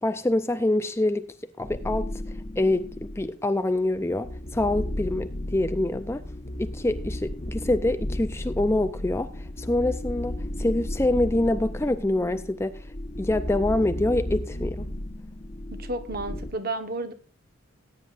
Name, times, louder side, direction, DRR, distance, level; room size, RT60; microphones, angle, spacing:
voice 1, 0.0-1.3 1.6-6.2 6.6-12.9 13.2-14.9, left 1 dB, 10° left, 0.4 m, -26 dB
sound 1, 1.6-3.3 3.9-16.5, left 1 dB, 30° left, 0.9 m, -34 dB
voice 2, 15.8-17.1, right 2 dB, 45° right, 1.2 m, -31 dB
19.0 x 9.6 x 2.5 m
head